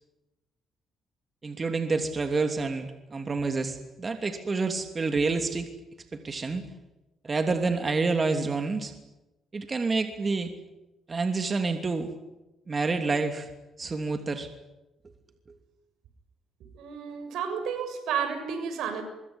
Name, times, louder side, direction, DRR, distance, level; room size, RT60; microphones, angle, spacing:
voice 1, 1.4-5.7 6.1-6.6 7.2-8.9 9.5-10.5 11.1-12.1 12.7-13.5 13.8-14.5, right 3 dB, 35° right, 6 dB, 2.9 m, -28 dB
voice 2, 16.7-19.0, right 7 dB, 80° right, 8 dB, 6.9 m, -31 dB
24.0 x 23.5 x 9.9 m, 1.0 s
cardioid pair, 90°, 0 cm